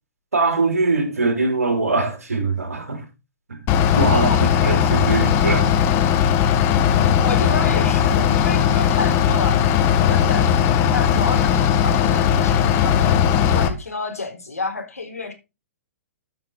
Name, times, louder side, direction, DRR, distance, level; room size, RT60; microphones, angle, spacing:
voice 1, 0.3-3.0 3.5-3.6 3.9-4.3 4.6-5.7, right 3 dB, 80° right, 3.1 m, -22 dB
Bus / Idling, 3.7-13.7, left 9 dB, 30° left, 1.5 m, -18 dB
voice 2, 4.1-4.5 7.2-9.6 10.1-15.3, left 3 dB, 85° left, 3.9 m, -30 dB
12.5 x 6.4 x 3.9 m
figure-of-eight pair, 115°, 8 cm